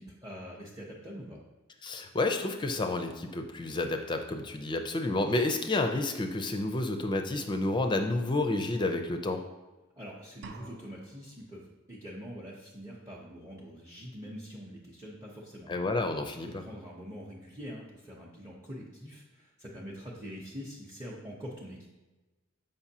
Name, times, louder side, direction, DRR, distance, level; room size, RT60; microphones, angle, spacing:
voice 1, 0.0-1.4 10.0-15.7 16.4-21.9, equal, 15° right, -4 dB, 0.7 m, -44 dB
voice 2, 1.8-9.4 15.7-16.6, left 2 dB, 20° left, 5 dB, 0.4 m, -30 dB
sound 1, 10.4-11.4, right 4 dB, 60° right, 0.5 m, -48 dB
7.1 x 5.2 x 2.8 m, 1.1 s
head